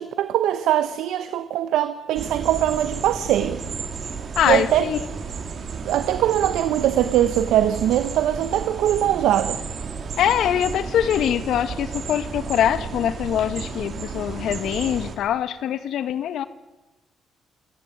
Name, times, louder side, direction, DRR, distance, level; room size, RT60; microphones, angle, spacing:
voice 1, 0.0-3.6 4.5-4.8 5.8-9.6, right 11 dB, 85° right, 1.1 m, -21 dB
sound 1, 2.2-15.2, right 5 dB, 55° right, 3.5 m, -33 dB
voice 2, 4.3-5.1 10.2-16.5, left 10 dB, 75° left, 1.6 m, -23 dB
27.5 x 14.5 x 9.8 m
cardioid pair, 90°, 0 cm